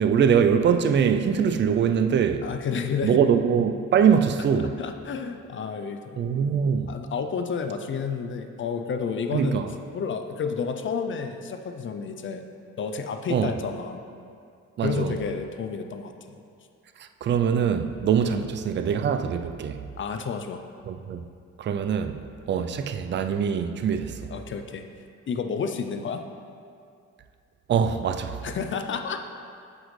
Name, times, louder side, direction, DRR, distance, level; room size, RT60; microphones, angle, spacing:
voice 1, 0.0-2.5 3.0-4.8 6.2-6.9 9.3-9.7 13.3-13.6 14.8-15.2 17.0-19.8 20.9-21.2 21.6-22.2 22.5-24.3 27.7-28.4, right 7 dB, 40° right, 8 dB, 0.4 m, -23 dB
voice 2, 2.4-3.2 4.8-6.2 6.9-9.6 9.9-12.4 12.8-14.0 14.8-16.4 18.2-18.5 20.0-20.6 24.3-24.9 25.3-26.2 28.4-29.2, left 5 dB, 40° left, 6 dB, 0.4 m, -30 dB
7.5 x 5.2 x 3.2 m, 2.4 s
cardioid pair, 90°, 30 cm